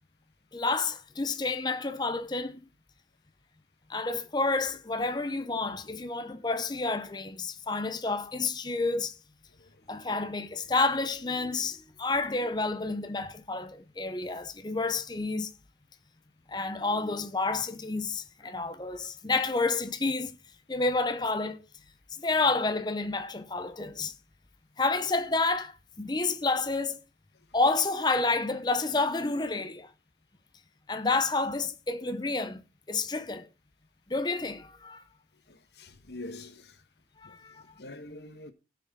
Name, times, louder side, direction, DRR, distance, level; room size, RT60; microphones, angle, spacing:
voice 1, 0.5-2.7 3.9-9.2 9.9-15.5 16.5-20.4 20.7-21.6 22.2-24.1 24.8-27.0 27.5-29.9 30.9-32.6 32.9-33.5 34.1-35.0 37.2-37.6, left 3 dB, 25° left, 0.7 m, -29 dB
voice 2, 35.5-36.8 37.2-37.4 37.8-38.5, left 2 dB, 70° left, 1.4 m, -44 dB
17.5 x 6.0 x 4.1 m
head